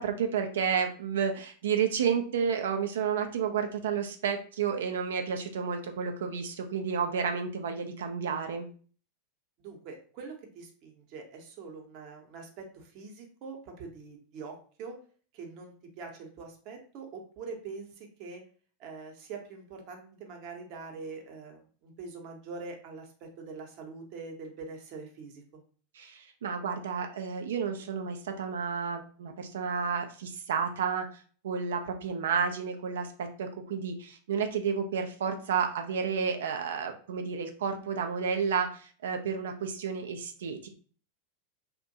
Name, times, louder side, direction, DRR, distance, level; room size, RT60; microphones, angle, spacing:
voice 1, 0.0-8.7 25.9-40.7, right 6 dB, 65° right, 5 dB, 0.3 m, -31 dB
voice 2, 9.6-15.0 15.3-18.4 18.8-25.6, right 4 dB, 45° right, 2 dB, 0.7 m, -44 dB
2.5 x 2.1 x 2.7 m, 0.42 s
figure-of-eight pair, 85°, 0 cm